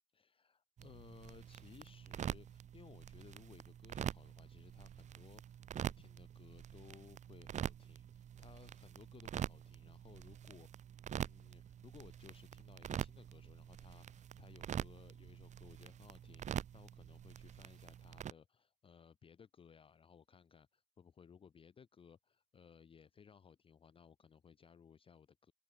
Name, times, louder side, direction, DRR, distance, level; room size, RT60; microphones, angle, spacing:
voice 1, 0.1-10.7 11.2-25.5, left 7 dB, 45° left, 0.4 m, -61 dB
sound 1, 0.8-18.3, right 9 dB, 65° right, 0.4 m, -45 dB
Wind instrument woodwind instrument, 9.6-16.7, right 8 dB, 85° right, 7.0 m, -88 dB
open air
cardioid pair, 85°, 13 cm